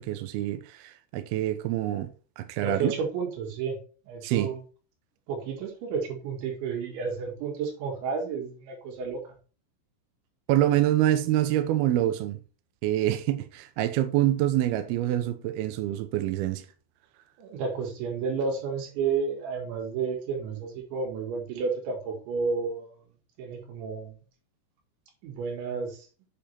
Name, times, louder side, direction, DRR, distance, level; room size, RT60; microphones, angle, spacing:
voice 1, 0.0-2.1 2.4-2.9 4.2-4.5 10.5-12.4 12.8-16.6, right 13 dB, 90° right, 2.2 m, -26 dB
voice 2, 2.6-3.8 4.1-4.6 5.3-9.2 17.4-23.0 23.4-24.2 25.2-26.1, right 5 dB, 75° right, 4.2 m, -31 dB
7.8 x 5.1 x 4.3 m
omnidirectional pair, 5.5 m